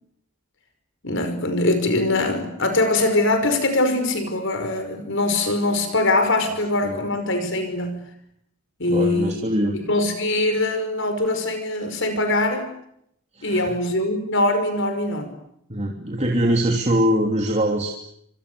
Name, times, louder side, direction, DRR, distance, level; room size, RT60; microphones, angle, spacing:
voice 1, 1.0-8.1 8.8-9.5 9.9-12.7 13.4-15.3, left 2 dB, 60° left, 8 dB, 5.5 m, -22 dB
voice 2, 8.9-9.8 13.3-13.7 15.7-17.9, equal, 30° right, 1 dB, 3.2 m, -22 dB
29.0 x 27.0 x 6.9 m, 0.73 s
head